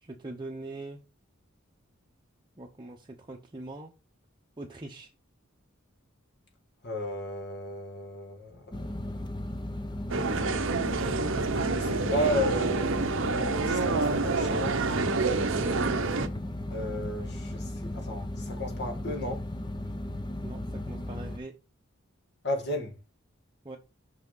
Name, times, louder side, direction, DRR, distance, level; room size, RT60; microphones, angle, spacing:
voice 1, 0.0-1.0 2.6-3.9 4.6-5.1 20.4-21.6 23.6-23.8, right 2 dB, 25° right, 0.8 m, -42 dB
voice 2, 6.8-9.0 11.8-13.0 13.3-14.8 16.7-19.4 22.4-22.9, left 1 dB, 55° left, 1.6 m, -34 dB
sound 1, 8.7-21.4, left 1 dB, 20° left, 0.6 m, -36 dB
sound 2, 10.1-16.3, right 3 dB, 70° right, 0.8 m, -28 dB
5.9 x 5.8 x 3.9 m
head